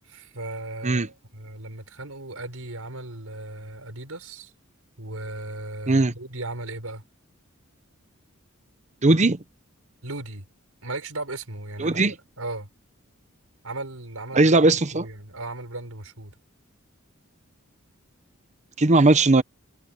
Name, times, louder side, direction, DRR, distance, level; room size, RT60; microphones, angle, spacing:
voice 1, 0.0-4.5 5.0-7.0 10.0-10.4 10.8-12.7 13.6-16.3, right 2 dB, 80° right, 5.4 m, -36 dB
voice 2, 9.0-9.4 11.8-12.1 14.3-15.1 18.8-19.4, right 2 dB, 35° right, 0.9 m, -18 dB
head